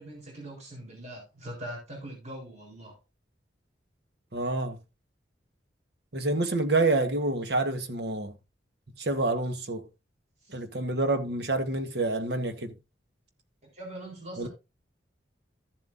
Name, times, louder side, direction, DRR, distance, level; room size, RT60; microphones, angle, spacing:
voice 1, 0.0-3.0 10.4-10.6 13.7-14.5, right 1 dB, 40° right, 3.9 m, -42 dB
voice 2, 4.3-4.8 6.1-8.4 9.0-9.8 10.5-12.7 14.4-14.5, right 2 dB, 60° right, 1.3 m, -28 dB
14.0 x 7.4 x 2.6 m
head